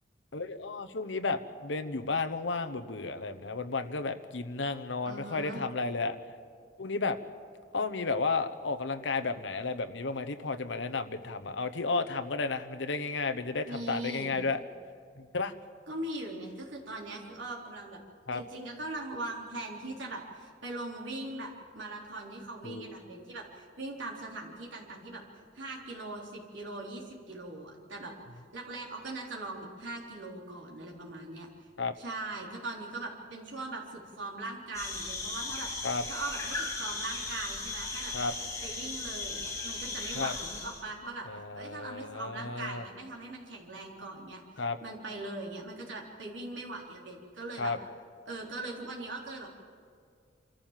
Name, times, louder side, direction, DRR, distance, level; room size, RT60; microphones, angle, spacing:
voice 1, 0.3-6.2 6.8-7.2 7.7-14.6 15.2-15.5 18.3-18.4 22.6-23.0 31.8-31.9 35.8-36.0 38.1-38.3 40.1-40.3 41.3-42.8 44.6-44.8 47.6-47.8, left 3 dB, 75° left, 8 dB, 1.0 m, -33 dB
voice 2, 5.0-5.6 13.6-14.4 15.9-18.0 18.3-25.2 25.5-31.5 32.0-35.7 36.1-38.1 38.6-41.3 41.5-47.7 48.3-49.5, right 2 dB, 80° right, -2 dB, 3.7 m, -40 dB
sound 1, 34.7-40.8, left 3 dB, 20° left, 3.4 m, -37 dB
26.5 x 14.0 x 7.4 m, 2.2 s
head